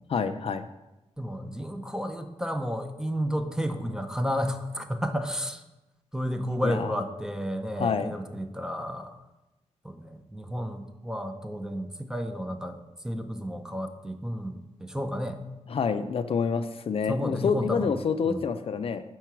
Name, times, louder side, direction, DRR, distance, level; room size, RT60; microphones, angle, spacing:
voice 1, 0.1-0.7 6.6-7.0 7.8-8.1 15.7-19.0, left 6 dB, 55° left, 10 dB, 0.4 m, -27 dB
voice 2, 1.2-5.6 6.1-9.2 9.8-12.8 13.0-15.4 17.1-17.9 18.2-18.5, equal, 5° right, 7 dB, 0.5 m, -32 dB
4.6 x 4.5 x 5.9 m, 0.99 s
wide cardioid pair, 105°, 12 cm